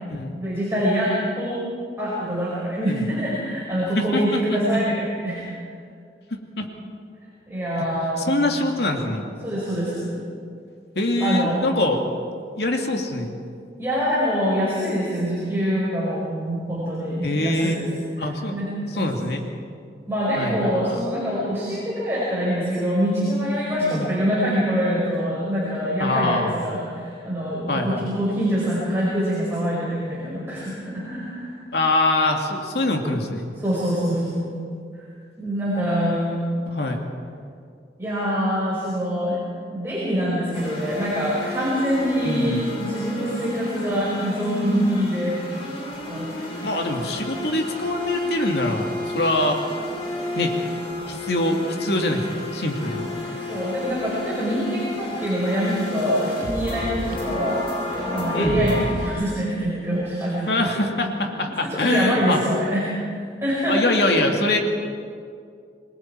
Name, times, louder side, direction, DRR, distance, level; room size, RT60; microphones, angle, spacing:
voice 1, 0.4-1.6 2.0-5.4 7.5-8.3 9.4-10.1 11.2-11.6 13.8-17.9 18.2-19.1 20.1-31.5 33.6-34.5 35.4-36.4 38.0-39.4 39.7-45.4 46.1-46.6 53.3-57.6 58.1-60.9 61.6-62.8 63.1-64.2, equal, 15° right, -8 dB, 5.5 m, -25 dB
voice 2, 4.0-4.6 6.3-6.6 8.2-9.2 11.0-12.0 12.6-13.3 17.2-17.8 18.2-18.6 18.9-19.4 20.4-21.0 23.8-24.1 26.0-26.8 27.7-28.1 31.7-33.5 36.7-37.0 42.2-42.6 46.6-49.6 50.4-50.5 51.1-52.2 52.5-53.1 58.3-58.8 60.5-62.4 63.7-64.6, left 2 dB, 65° left, 3 dB, 2.3 m, -24 dB
sound 1, 40.5-59.1, left 1 dB, 30° left, 7.4 m, -31 dB
28.0 x 22.0 x 4.6 m, 2.3 s
head